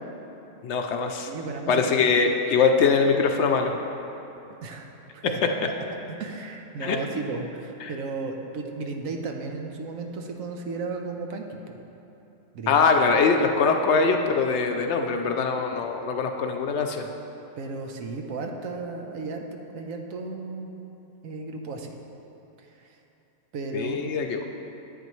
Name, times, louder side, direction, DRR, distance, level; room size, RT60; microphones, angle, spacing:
voice 1, 0.6-1.3 1.7-3.7 6.8-7.0 7.8-7.9 12.7-17.1 23.7-24.4, left 5 dB, 65° left, 4 dB, 0.8 m, -22 dB
voice 2, 1.3-1.9 4.6-4.9 5.1-5.4 6.1-11.8 12.5-12.8 15.7-15.8 17.6-19.4 19.7-20.7 21.2-21.9 22.8-23.0 23.5-24.0, right 3 dB, 85° right, 3 dB, 1.2 m, -34 dB
10.5 x 8.4 x 3.1 m, 2.9 s
omnidirectional pair, 1.4 m